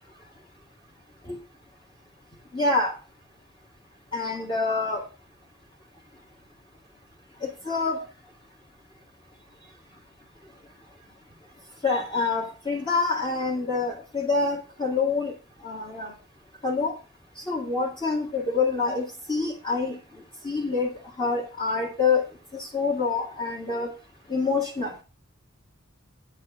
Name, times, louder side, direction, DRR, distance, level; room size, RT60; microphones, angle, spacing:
voice 1, 2.5-3.0 4.1-5.1 7.4-8.1 11.8-15.3 15.6-16.1 16.6-16.9 17.4-20.0 20.4-20.9 21.2-22.3 22.5-23.9 24.3-25.0, left 4 dB, 25° left, -2 dB, 1.9 m, -26 dB
9.3 x 4.7 x 7.2 m, 0.31 s
head